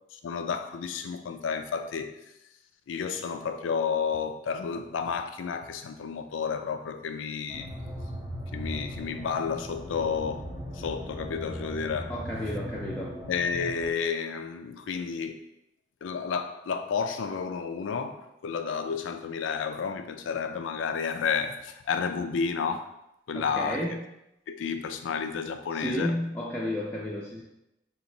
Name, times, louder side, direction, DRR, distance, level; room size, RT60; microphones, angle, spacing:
voice 1, 0.2-2.2 2.9-7.7 8.5-10.4 10.7-12.1 13.3-15.4 16.0-22.8 23.3-23.8 24.5-26.1, left 6 dB, 85° left, 8 dB, 0.3 m, -31 dB
sound 1, 7.5-13.9, equal, 30° right, 0.6 m, -38 dB
voice 2, 12.1-13.1 23.3-24.0 25.7-27.4, left 1 dB, 10° left, -6 dB, 0.3 m, -32 dB
4.2 x 3.0 x 2.6 m, 0.85 s
head